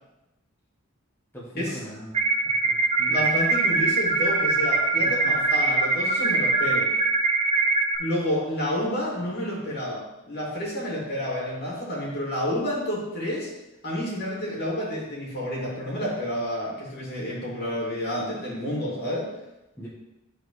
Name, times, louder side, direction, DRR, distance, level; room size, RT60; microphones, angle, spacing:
voice 1, 1.3-2.2 2.4-3.2 4.9-5.4 19.8-19.9, equal, 10° left, -7 dB, 1.4 m, -41 dB
sound 1, 2.1-8.0, right 3 dB, 30° right, 1.1 m, -23 dB
voice 2, 3.1-6.9 8.0-13.5 13.8-19.3, equal, 50° left, -5 dB, 2.7 m, -29 dB
11.5 x 4.7 x 3.2 m, 0.96 s
head